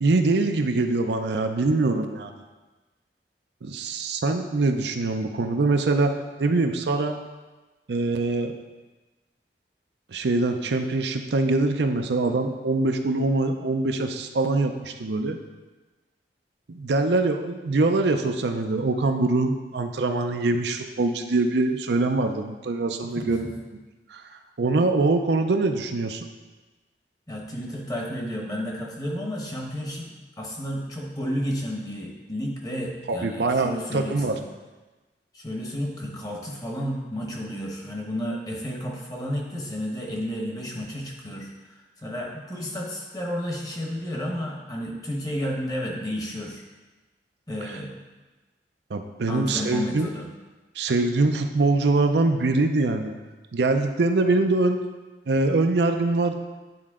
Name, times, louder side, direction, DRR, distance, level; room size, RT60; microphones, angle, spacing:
voice 1, 0.0-2.3 3.6-6.1 6.4-7.2 7.9-8.5 10.1-15.4 16.7-23.5 24.1-24.2 24.6-26.3 33.1-34.4 48.9-50.1 50.8-53.1 53.5-54.8 55.3-56.4, right 3 dB, 75° right, 6 dB, 0.5 m, -23 dB
voice 2, 23.0-23.5 27.3-30.1 30.4-34.4 35.3-46.6 47.5-47.9 49.3-50.3, equal, 20° left, -1 dB, 1.1 m, -32 dB
9.4 x 4.4 x 3.7 m, 1.2 s
head